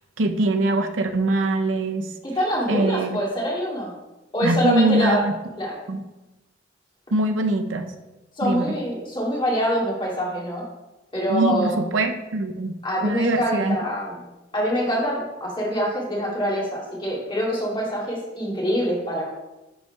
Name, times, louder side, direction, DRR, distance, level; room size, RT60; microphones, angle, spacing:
voice 1, 0.2-2.1 2.7-3.2 4.4-5.3 5.9-6.0 7.1-7.8 8.4-8.8 11.3-12.7 13.0-13.8, right 2 dB, 80° right, 6 dB, 0.6 m, -22 dB
voice 2, 2.2-3.9 4.3-5.2 5.6-5.7 8.4-10.6 11.1-11.8 12.8-14.2 14.5-19.3, equal, 25° left, -5 dB, 2.4 m, -25 dB
11.0 x 5.6 x 2.3 m, 1.0 s
head